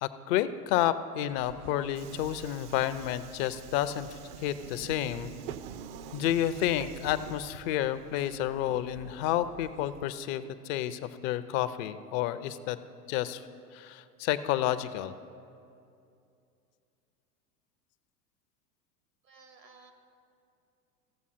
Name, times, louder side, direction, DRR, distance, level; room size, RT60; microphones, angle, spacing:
voice 1, 0.0-5.3 6.1-12.8 13.1-13.4 13.7-15.1, left 12 dB, 40° left, 13 dB, 0.5 m, -30 dB
Subway metro underground, 1.3-10.0, right 9 dB, 40° right, 0.4 m, -46 dB
voice 2, 19.2-19.9, right 4 dB, 85° right, 4 dB, 1.6 m, -55 dB
16.0 x 7.1 x 4.2 m, 2.5 s
hypercardioid pair, 90°, 48 cm